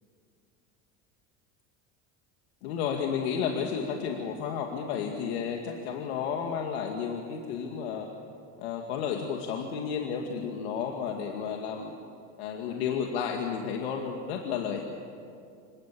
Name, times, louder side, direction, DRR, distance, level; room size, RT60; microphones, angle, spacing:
voice 1, 2.6-8.1 8.6-12.0 12.4-14.8, left 7 dB, 85° left, 2 dB, 2.3 m, -32 dB
27.0 x 24.0 x 7.6 m, 2.4 s
supercardioid pair, 125°, 31 cm